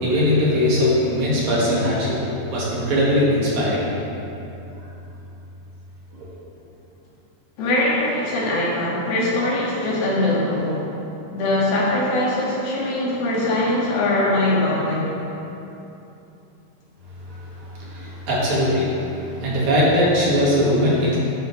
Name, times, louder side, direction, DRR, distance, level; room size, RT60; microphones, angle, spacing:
voice 1, 0.0-2.2 2.5-3.9 17.8-18.9 19.2-21.2, left 1 dB, 60° right, -7 dB, 2.9 m, -20 dB
voice 2, 7.6-10.9 11.3-15.1, left 1 dB, 85° left, -6 dB, 3.4 m, -22 dB
10.0 x 5.2 x 5.1 m, 3.0 s
omnidirectional pair, 4.1 m